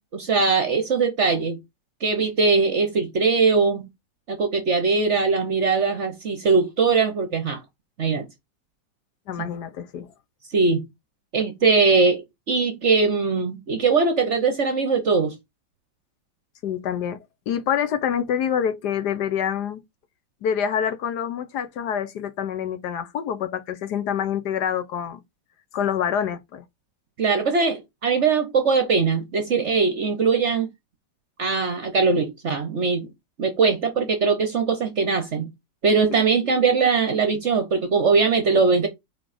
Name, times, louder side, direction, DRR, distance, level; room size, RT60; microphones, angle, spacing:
voice 1, 0.1-1.6 2.0-3.9 4.3-7.6 8.0-8.3 9.4-9.5 10.5-10.9 11.3-12.2 12.5-15.3 27.2-30.7 31.4-33.1 33.4-35.5 35.8-38.9, right 4 dB, 50° right, 1.0 m, -21 dB
voice 2, 9.3-10.1 16.6-17.2 17.5-19.8 20.4-25.2 25.7-26.6 36.1-36.2, left 8 dB, 70° left, 1.3 m, -26 dB
4.6 x 4.2 x 4.9 m
omnidirectional pair, 2.0 m